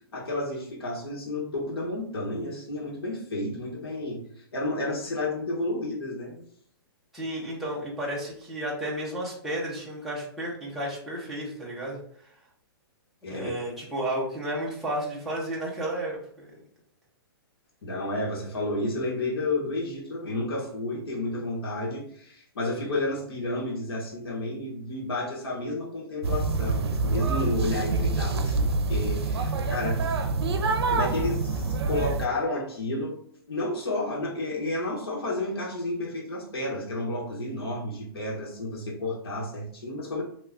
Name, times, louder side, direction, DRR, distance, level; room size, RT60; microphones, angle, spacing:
voice 1, 0.1-4.2 4.5-6.4 13.2-13.5 17.8-30.3 30.9-33.1 33.5-40.2, left 2 dB, 70° left, -4 dB, 1.4 m, -31 dB
voice 2, 7.1-12.3 13.3-16.5, right 1 dB, ahead, -7 dB, 0.5 m, -32 dB
sound 1, 26.2-32.2, right 3 dB, 85° right, 0.5 m, -26 dB
3.0 x 2.3 x 3.6 m, 0.63 s
hypercardioid pair, 170°, 13 cm